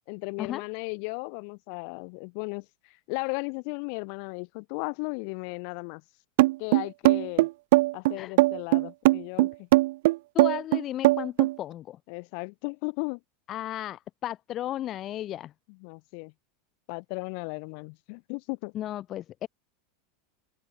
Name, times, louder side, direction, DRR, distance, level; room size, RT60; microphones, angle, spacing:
voice 1, 0.1-6.0 6.6-7.5 7.9-9.7 12.1-13.2 15.7-16.3 16.9-18.7, left 40 dB or more, 55° left, 4.8 m, -36 dB
sound 1, 6.4-11.5, right 19 dB, 60° right, 1.1 m, -20 dB
voice 2, 10.3-12.0 13.5-15.5 18.7-19.5, left 12 dB, 40° left, 3.0 m, -34 dB
open air
figure-of-eight pair, 85°, 0 cm